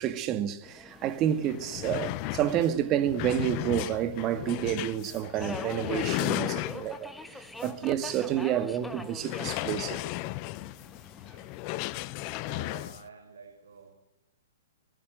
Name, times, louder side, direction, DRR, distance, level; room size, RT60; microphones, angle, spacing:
voice 1, 0.0-10.2, right 10 dB, 30° right, 1.9 m, -29 dB
Subway metro underground, 0.6-12.6, left 2 dB, 5° left, 1.5 m, -46 dB
sound 1, 1.0-1.1 1.4-7.1 7.6-7.7 8.1-8.2 9.2-13.0, left 19 dB, 35° left, 0.9 m, -35 dB
voice 2, 12.3-14.0, right 5 dB, 80° right, 5.4 m, -49 dB
25.0 x 21.5 x 7.8 m
hypercardioid pair, 140°, 0 cm